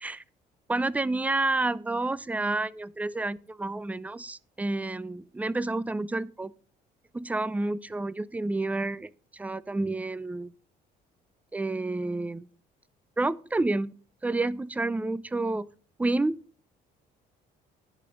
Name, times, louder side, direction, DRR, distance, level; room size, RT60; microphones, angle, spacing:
voice 1, 0.7-6.5 7.1-10.5 11.5-12.5 13.2-13.9 14.2-15.7 16.0-16.4, right 2 dB, 10° right, 0.4 m, -29 dB
11.0 x 5.1 x 6.3 m
cardioid pair, 110°, 17 cm